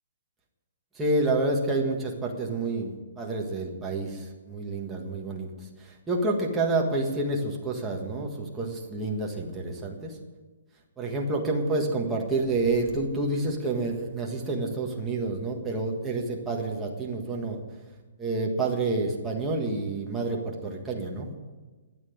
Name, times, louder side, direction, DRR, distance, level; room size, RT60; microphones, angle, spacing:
voice 1, 1.0-5.5 6.1-10.2 11.0-17.6 18.2-21.3, right 2 dB, 5° right, -2 dB, 1.6 m, -28 dB
12.5 x 9.2 x 9.5 m, 1.3 s
hypercardioid pair, 175°, 0 cm